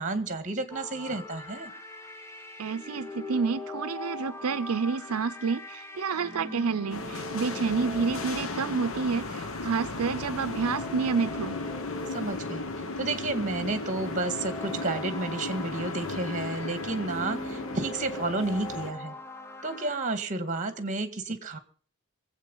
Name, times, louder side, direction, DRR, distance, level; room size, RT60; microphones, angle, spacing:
voice 1, 0.0-1.7 12.1-12.6 13.0-19.2 19.6-21.6, right 2 dB, 35° right, 10 dB, 1.9 m, -31 dB
sound 1, 0.7-20.0, left 2 dB, 10° left, 0.9 m, -42 dB
voice 2, 2.6-11.6, right 5 dB, 80° right, 12 dB, 0.6 m, -29 dB
sound 2, 6.9-18.9, left 3 dB, 65° left, 1.2 m, -35 dB
23.0 x 8.3 x 5.5 m, 0.44 s
head